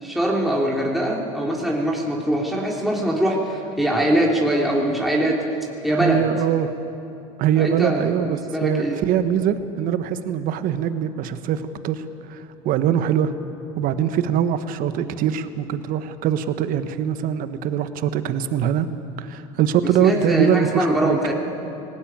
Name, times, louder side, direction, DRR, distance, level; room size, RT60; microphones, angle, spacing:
voice 1, 0.0-5.4 5.8-6.2 7.6-9.0 19.8-21.3, right 1 dB, ahead, -3 dB, 3.2 m, -22 dB
voice 2, 6.0-6.8 7.4-13.3 13.8-18.9 19.2-21.2, right 9 dB, 55° right, 10 dB, 1.3 m, -23 dB
18.5 x 18.5 x 9.3 m, 2.8 s
supercardioid pair, 95°, 17 cm